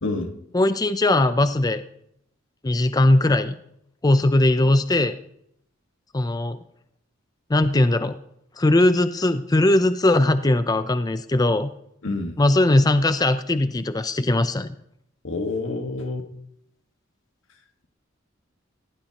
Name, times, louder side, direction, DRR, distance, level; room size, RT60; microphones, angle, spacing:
voice 1, 0.0-0.3 12.0-12.4 15.2-16.3, left 2 dB, 90° left, 5 dB, 1.6 m, -28 dB
voice 2, 0.5-1.8 2.6-3.5 4.0-5.2 6.1-6.6 7.5-8.2 8.6-11.7 12.4-14.7, left 1 dB, 20° left, 11 dB, 0.5 m, -19 dB
18.0 x 15.5 x 2.9 m, 0.75 s
head